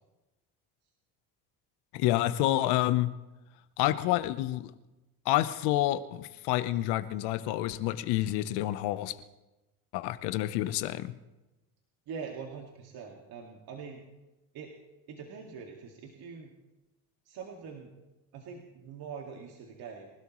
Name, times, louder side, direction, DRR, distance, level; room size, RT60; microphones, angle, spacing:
voice 1, 1.9-3.1 3.8-4.7 5.3-9.1 9.9-11.1, left 14 dB, 80° left, 13 dB, 1.0 m, -28 dB
voice 2, 12.1-14.0 14.5-14.7 15.1-16.5 17.3-17.9 18.3-20.1, right 6 dB, 70° right, 1 dB, 2.2 m, -43 dB
26.5 x 12.5 x 3.1 m, 1.0 s
supercardioid pair, 85°, 39 cm